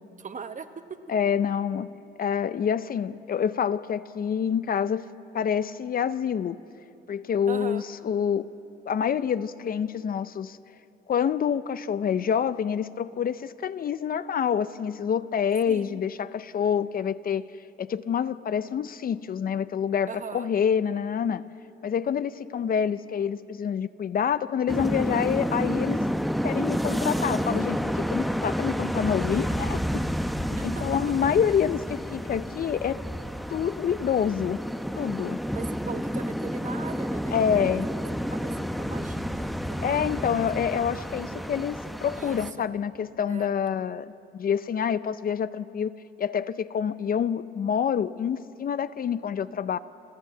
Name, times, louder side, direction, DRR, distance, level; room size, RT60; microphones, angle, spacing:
voice 1, 0.0-1.0 7.5-7.8 15.7-16.0 20.1-20.5 30.6-30.8 35.5-37.9 38.3-40.5 41.2-41.6 42.1-42.6 43.2-43.5, right 6 dB, 40° right, 9 dB, 1.2 m, -40 dB
voice 2, 1.1-1.9 2.2-5.0 5.3-6.6 7.1-8.4 8.9-10.6 11.1-17.5 17.8-21.4 21.8-26.0 26.4-30.1 30.6-33.0 33.5-34.6 35.0-35.4 37.3-37.9 39.8-49.8, left 8 dB, 45° left, 14 dB, 0.6 m, -27 dB
sound 1, 24.7-42.5, equal, ahead, 0.8 m, -30 dB
29.5 x 12.0 x 7.8 m, 2.7 s
cardioid pair, 90°, 20 cm